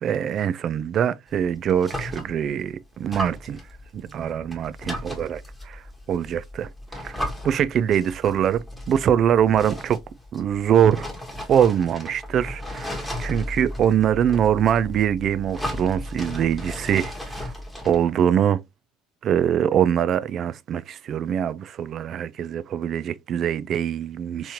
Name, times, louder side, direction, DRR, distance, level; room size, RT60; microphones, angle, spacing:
voice 1, 0.0-3.6 3.9-5.8 6.1-6.7 7.0-7.2 7.4-10.0 10.3-11.1 11.5-17.5 17.8-18.6 19.2-24.5, right 9 dB, 50° right, 0.3 m, -23 dB
sound 1, 1.3-2.6 3.0-18.1, equal, 5° left, 1.2 m, -35 dB
3.4 x 3.0 x 2.7 m
hypercardioid pair, 70°, 0 cm